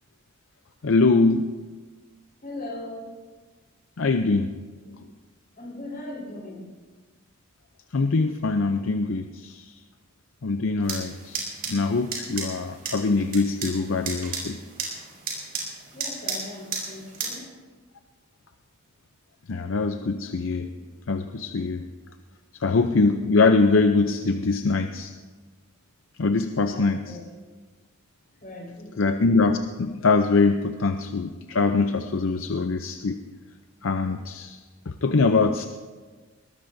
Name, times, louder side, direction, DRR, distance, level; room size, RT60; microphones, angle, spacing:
voice 1, 0.8-1.5 4.0-4.5 4.9-5.0 7.9-9.7 10.4-14.6 19.5-20.7 21.1-21.9 22.6-25.1 26.2-27.2 29.0-33.2 33.8-34.6 34.9-35.7, left 3 dB, 65° left, 7 dB, 0.6 m, -23 dB
voice 2, 2.4-3.1 5.6-6.7 15.9-17.5 26.6-27.2 28.4-29.0, left 1 dB, 40° left, -2 dB, 4.5 m, -38 dB
sound 1, 10.8-17.3, right 4 dB, 45° right, 4.6 m, -34 dB
21.5 x 19.0 x 2.7 m, 1.4 s
head